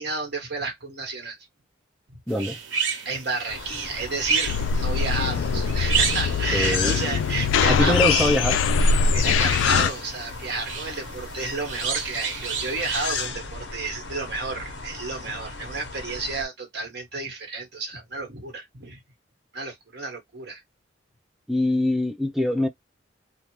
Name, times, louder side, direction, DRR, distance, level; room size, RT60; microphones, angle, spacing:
voice 1, 0.0-1.4 3.0-8.4 9.0-19.0 19.5-20.6, right 3 dB, 60° right, 1.3 m, -31 dB
voice 2, 2.3-2.6 6.5-7.0 7.7-8.6 21.5-22.7, left 1 dB, ahead, 0.5 m, -23 dB
sound 1, 2.3-13.3, right 6 dB, 80° right, 1.1 m, -32 dB
sound 2, 3.5-16.4, left 4 dB, 65° left, 0.8 m, -36 dB
sound 3, 4.5-9.9, left 5 dB, 85° left, 0.3 m, -22 dB
2.5 x 2.4 x 2.9 m
head